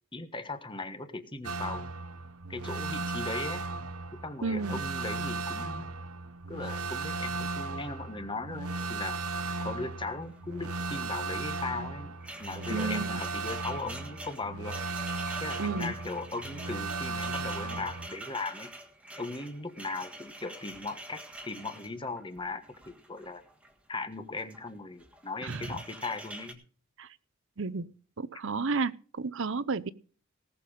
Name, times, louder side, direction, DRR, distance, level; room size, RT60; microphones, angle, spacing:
voice 1, 0.1-1.9 2.5-3.6 4.2-5.9 6.5-9.2 9.6-14.8 15.4-18.7 19.2-23.4 23.9-26.7, left 3 dB, 20° left, 10 dB, 1.3 m, -38 dB
sound 1, 1.4-18.1, right 3 dB, 80° right, 1.0 m, -36 dB
voice 2, 4.4-4.8 12.7-13.2 15.6-15.9 25.4-25.8 27.0-27.1 27.6-27.9 28.2-29.9, right 4 dB, 60° right, 18 dB, 0.7 m, -32 dB
sound 2, 9.2-9.9 10.1-10.4 11.5-23.7 24.3-24.7 25.0-26.5, right 1 dB, 5° right, 1.6 m, -46 dB
18.5 x 6.9 x 5.5 m, 0.40 s
head